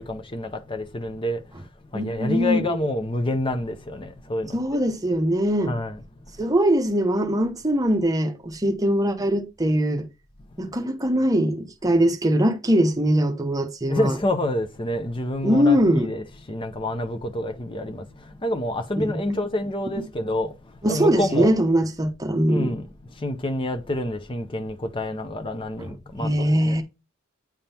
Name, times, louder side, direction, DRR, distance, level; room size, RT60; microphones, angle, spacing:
voice 1, 0.0-1.4 1.9-4.6 5.7-6.0 13.9-18.1 18.4-20.5 20.9-21.5 22.5-22.8 23.2-26.8, left 1 dB, 25° left, 0.6 m, -28 dB
voice 2, 1.9-2.8 4.5-5.7 6.4-10.1 10.6-14.2 15.4-16.1 19.0-19.4 20.8-22.8 26.2-26.8, equal, 15° right, 0.8 m, -22 dB
8.9 x 3.6 x 4.3 m
head